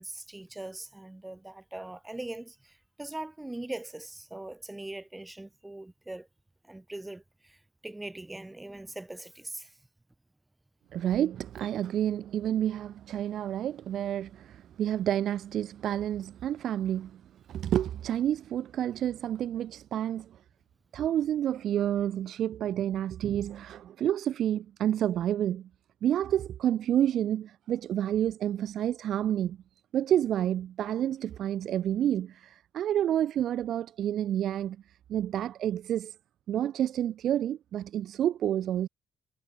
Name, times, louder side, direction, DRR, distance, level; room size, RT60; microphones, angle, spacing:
voice 1, 0.0-6.3 6.6-9.8, right 2 dB, 10° right, 0.8 m, -41 dB
voice 2, 10.9-17.2 17.5-20.3 20.9-25.7 26.0-29.6 29.9-34.8 35.1-36.1 36.5-38.9, right 11 dB, 70° right, 0.4 m, -29 dB
cardioid pair, 90°, 0 cm